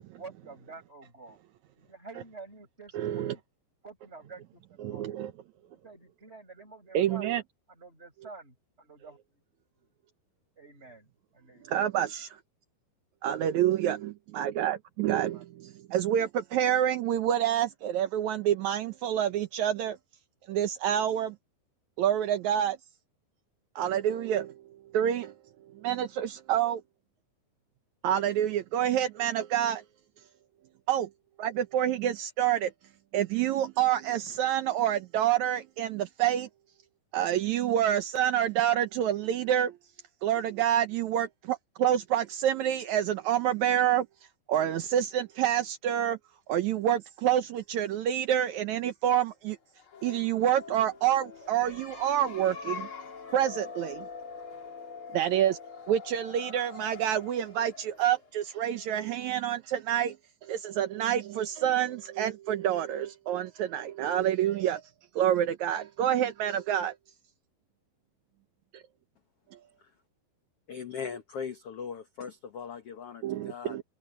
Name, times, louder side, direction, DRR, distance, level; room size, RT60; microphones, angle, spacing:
voice 1, 0.2-1.4 1.8-3.4 3.8-5.2 5.8-7.4 7.8-9.2 10.6-11.1 11.3-11.6 15.1-15.4, right 4 dB, 15° right, 5.6 m, -48 dB
voice 2, 2.9-3.4 4.8-5.3 6.9-7.4 11.6-12.4 13.2-20.0 20.5-21.4 22.0-22.8 23.8-24.5 24.9-25.3 25.8-26.8 28.0-29.8 30.9-31.1 31.4-32.7 33.1-36.5 37.1-39.8 40.2-44.1 44.5-46.2 46.5-49.6 50.0-52.9 53.3-54.1 55.1-55.6 55.9-60.2 60.4-64.8 65.2-66.9 68.7-68.8 73.2-73.8, right 10 dB, 90° right, 1.6 m, -27 dB
sound 1, 49.7-59.2, left 4 dB, 35° left, 2.9 m, -44 dB
voice 3, 70.7-73.8, left 6 dB, 70° left, 1.4 m, -39 dB
omnidirectional pair, 4.6 m